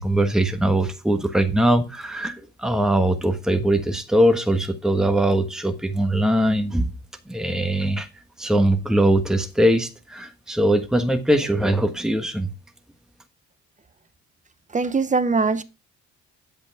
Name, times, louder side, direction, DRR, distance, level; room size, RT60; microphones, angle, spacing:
voice 1, 0.0-6.9 7.3-8.1 8.4-12.5, right 1 dB, ahead, 1.3 m, -21 dB
voice 2, 14.7-15.6, right 4 dB, 25° right, 1.0 m, -21 dB
8.9 x 8.0 x 3.5 m
cardioid pair, 90°, 30 cm